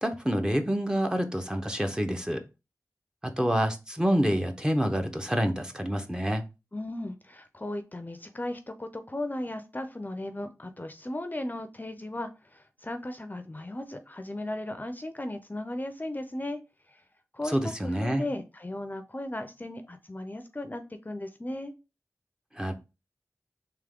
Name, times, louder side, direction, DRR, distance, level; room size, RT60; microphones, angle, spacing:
voice 1, 0.0-2.4 3.4-6.4 17.5-18.2 22.6-22.7, equal, 10° right, 0.8 m, -27 dB
voice 2, 6.7-16.6 16.9-17.0 17.3-21.7, left 1 dB, 30° left, 0.5 m, -36 dB
3.6 x 3.1 x 3.5 m
cardioid pair, 40°, 6 cm